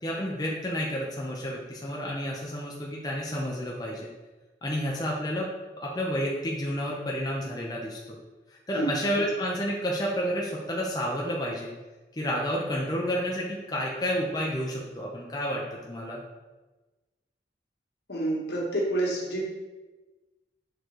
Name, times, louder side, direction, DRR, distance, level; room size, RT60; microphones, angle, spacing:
voice 1, 0.0-4.1 4.6-5.5 5.8-8.2 8.5-11.7 12.1-16.2, equal, 20° left, -3 dB, 0.7 m, -30 dB
voice 2, 18.1-19.4, right 1 dB, 70° left, -3 dB, 1.7 m, -28 dB
6.6 x 3.9 x 4.6 m, 1.2 s
head